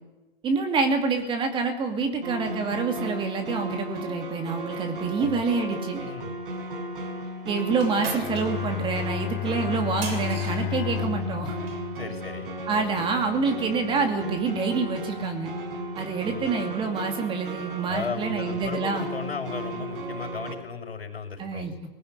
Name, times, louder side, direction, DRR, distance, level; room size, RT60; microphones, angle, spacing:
voice 1, 0.4-6.0 7.5-11.6 12.7-15.5 16.0-19.1 21.4-21.7, right 4 dB, 15° right, 5 dB, 2.4 m, -27 dB
sound 1, 2.2-20.6, right 1 dB, 60° right, 5.2 m, -35 dB
voice 2, 6.0-6.3 12.0-12.5 16.2-16.5 17.9-21.7, left 5 dB, 85° left, 3 dB, 5.8 m, -35 dB
sound 2, 7.7-11.9, right 3 dB, 75° right, 6.8 m, -39 dB
Bowed string instrument, 8.2-13.9, left 15 dB, 25° left, 3.5 m, -34 dB
20.5 x 15.5 x 9.5 m, 1.1 s
hypercardioid pair, 140°, 30 cm